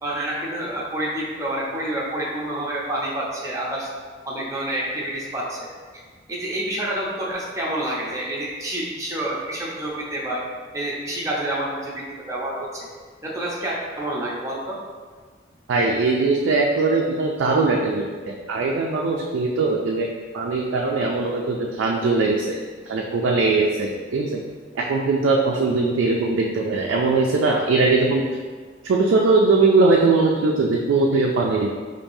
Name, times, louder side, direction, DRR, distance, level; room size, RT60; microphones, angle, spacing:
voice 1, 0.0-3.9 4.2-5.7 6.3-10.4 10.7-12.7 13.2-14.8, right 1 dB, 15° right, -5 dB, 0.6 m, -28 dB
voice 2, 15.7-22.6 22.9-24.4 24.8-28.2 28.9-31.7, right 3 dB, 70° right, -1 dB, 0.3 m, -20 dB
4.5 x 2.6 x 2.6 m, 1.5 s
head